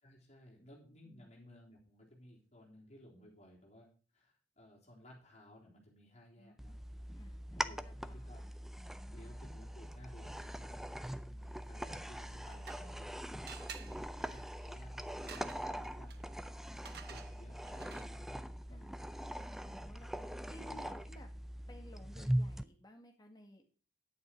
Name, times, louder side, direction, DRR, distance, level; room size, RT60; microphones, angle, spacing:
voice 1, 0.0-6.8 7.5-8.5 9.1-10.7 11.2-13.3 13.8-16.5 17.1-18.2 18.7-18.8 19.6-21.1, left 1 dB, 35° left, -3 dB, 3.6 m, -58 dB
voice 2, 6.4-6.8 7.2-8.5 8.8-9.3 13.8-14.1 18.7-19.0 19.6-20.1 20.5-21.3 21.7-23.6, left 1 dB, 20° left, 3 dB, 1.8 m, -57 dB
sound 1, 6.6-22.6, equal, ahead, 0.4 m, -42 dB
sound 2, 12.3-13.1 13.5-18.3, right 8 dB, 55° right, 0.8 m, -53 dB
10.0 x 8.6 x 4.6 m, 0.39 s
head